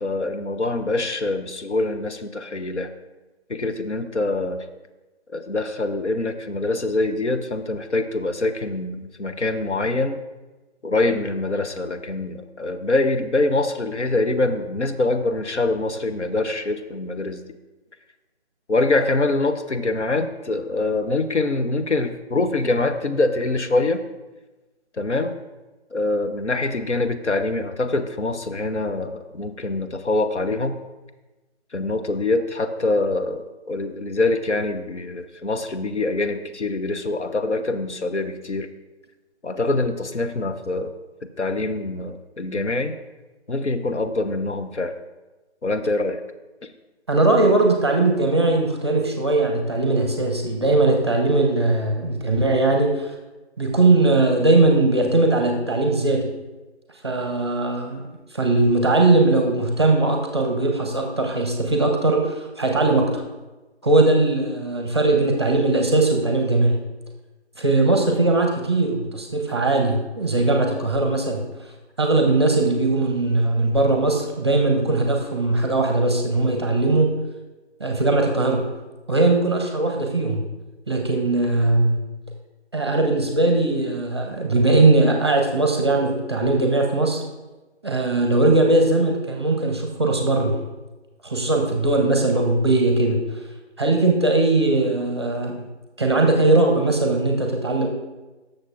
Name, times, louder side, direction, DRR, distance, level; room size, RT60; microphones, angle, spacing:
voice 1, 0.0-2.9 3.5-4.6 5.3-10.2 10.8-17.4 18.7-24.0 25.0-25.4 25.9-30.8 31.7-38.7 39.4-40.9 41.4-43.0 43.5-44.9 45.6-46.2, left 2 dB, 85° left, 8 dB, 0.8 m, -24 dB
voice 2, 47.1-53.1 53.6-56.2 57.0-58.0 58.3-63.2 63.8-66.7 67.6-71.4 72.0-77.1 77.8-78.6 79.1-80.4 80.9-82.0 82.7-87.2 87.8-90.6 91.2-93.2 93.8-95.5 96.0-97.9, right 2 dB, 25° right, 2 dB, 0.7 m, -19 dB
14.0 x 6.5 x 2.5 m, 1.1 s
figure-of-eight pair, 150°, 34 cm